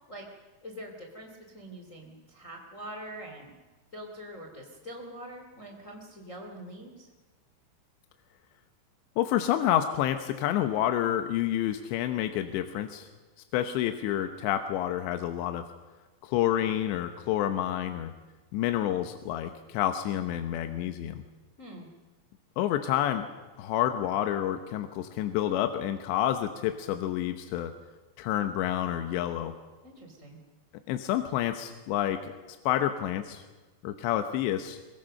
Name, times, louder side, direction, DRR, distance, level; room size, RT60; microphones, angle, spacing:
voice 1, 0.6-3.5 3.9-7.1 21.6-21.9 29.8-30.4, right 1 dB, 20° left, 2 dB, 2.5 m, -44 dB
voice 2, 9.2-13.1 13.5-15.6 16.2-18.1 18.5-21.2 22.6-23.3 23.6-27.7 28.2-29.5 30.9-32.3 32.7-33.4 33.8-34.8, left 11 dB, 85° left, 7 dB, 3.2 m, -29 dB
23.5 x 22.5 x 6.5 m, 1.2 s
omnidirectional pair, 5.1 m